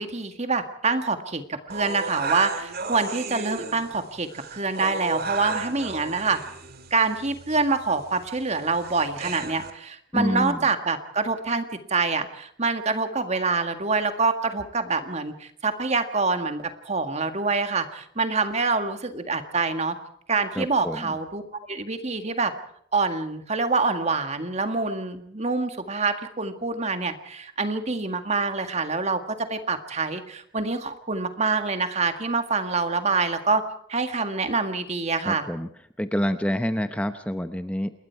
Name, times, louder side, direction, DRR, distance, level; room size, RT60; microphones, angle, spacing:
voice 1, 0.0-6.4 6.9-20.0 20.3-21.4 21.7-22.5 22.9-33.6 33.9-35.5, right 4 dB, 35° right, 8 dB, 1.9 m, -26 dB
sound 1, 1.7-9.7, right 4 dB, 55° right, 2.3 m, -34 dB
voice 2, 10.1-10.7 20.5-21.2 35.2-35.7 36.0-37.9, equal, 5° left, 9 dB, 0.8 m, -27 dB
28.0 x 21.5 x 4.7 m, 0.67 s
head